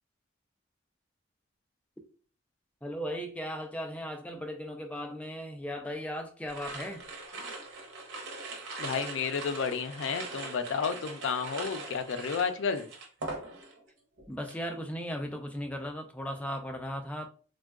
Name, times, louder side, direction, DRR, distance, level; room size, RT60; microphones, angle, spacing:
voice 1, 2.8-7.1 14.3-17.3, equal, 5° left, 4 dB, 0.3 m, -37 dB
sound 1, 6.5-13.9 14.2-14.6, right 3 dB, 90° right, 0.8 m, -41 dB
voice 2, 8.8-12.9, left 6 dB, 80° left, 9 dB, 0.4 m, -31 dB
3.5 x 2.2 x 2.3 m, 0.40 s
head